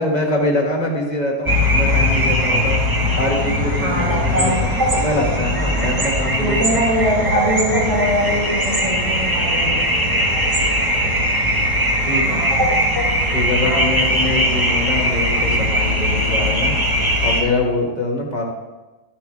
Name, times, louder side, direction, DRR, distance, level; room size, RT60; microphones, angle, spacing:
voice 1, 0.0-2.8 3.1-6.8 7.1-7.2 11.0-11.2 12.0-12.4 13.3-16.7 17.2-18.4, left 2 dB, 30° left, -1 dB, 1.9 m, -24 dB
sound 1, 1.5-17.4, equal, 15° right, 1.2 m, -19 dB
voice 2, 3.8-4.7 6.4-10.2 12.3-12.7 13.6-14.0, equal, 80° right, -4 dB, 2.5 m, -23 dB
12.0 x 11.0 x 3.4 m, 1.1 s
omnidirectional pair, 1.6 m